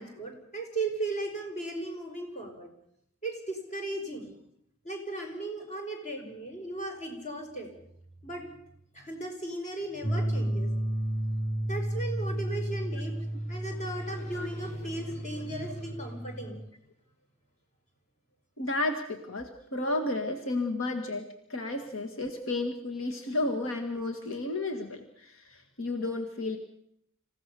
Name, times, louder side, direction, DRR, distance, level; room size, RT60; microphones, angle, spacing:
voice 1, 0.0-2.7 3.2-4.3 4.8-7.7 8.2-8.5 8.9-10.7 11.6-16.6, right 2 dB, 35° left, 3 dB, 5.3 m, -37 dB
sound 1, 10.0-16.7, right 1 dB, 10° left, 0.9 m, -32 dB
voice 2, 14.0-14.5 18.6-21.2 21.5-26.6, left 2 dB, 75° left, 4 dB, 1.9 m, -32 dB
27.0 x 16.0 x 7.0 m, 0.72 s
head